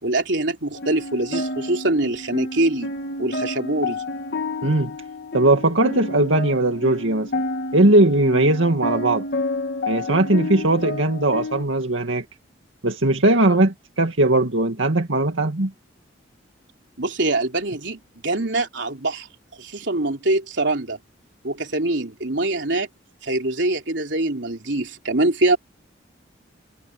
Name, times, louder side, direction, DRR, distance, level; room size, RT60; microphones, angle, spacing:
voice 1, 0.0-2.9 3.2-4.0 17.0-19.3 19.6-21.0 21.4-22.9 23.2-25.6, right 2 dB, 65° right, 3.6 m, -23 dB
sound 1, 0.8-11.6, left 2 dB, 55° left, 1.8 m, -30 dB
voice 2, 5.3-7.3 7.7-9.2 9.9-12.2 12.8-15.7, right 2 dB, 85° right, 2.1 m, -19 dB
head